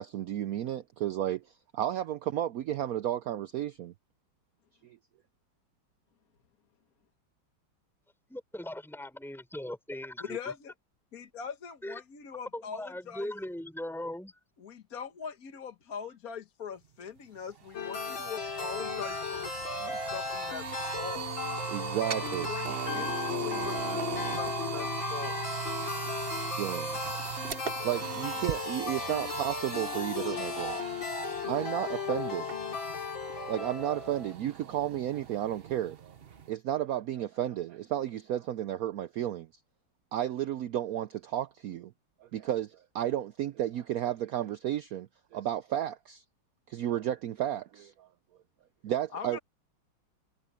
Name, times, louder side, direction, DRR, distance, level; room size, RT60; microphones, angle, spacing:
voice 1, 0.0-1.4 1.7-3.9 4.8-5.0 21.7-22.5 26.6-27.2 27.8-30.8 31.5-32.5 33.5-36.2 36.5-39.5 40.1-41.9 42.2-46.2 46.7-48.1 48.8-49.4, right 11 dB, 90° right, 0.7 m, -33 dB
voice 2, 8.3-10.5 11.8-12.0 12.5-14.3, left 1 dB, ahead, 5.2 m, -39 dB
voice 3, 10.2-10.7 11.1-13.3 14.6-20.6 21.0-21.3 22.5-25.7 49.1-49.4, left 7 dB, 50° left, 1.6 m, -42 dB
sound 1, 17.1-17.2 17.5-36.5, right 7 dB, 45° right, 0.7 m, -38 dB
sound 2, 17.7-34.3, left 6 dB, 75° left, 3.2 m, -36 dB
omnidirectional pair, 2.2 m